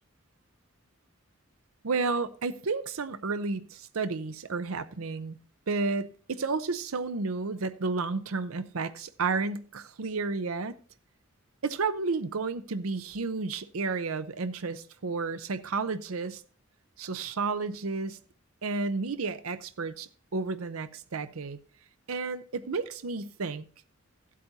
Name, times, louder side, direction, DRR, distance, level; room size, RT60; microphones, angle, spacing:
voice 1, 1.8-5.4 5.7-10.7 11.6-16.4 17.0-18.2 18.6-21.6 22.1-23.6, right 4 dB, 85° right, 0.7 m, -32 dB
15.5 x 8.4 x 2.8 m
head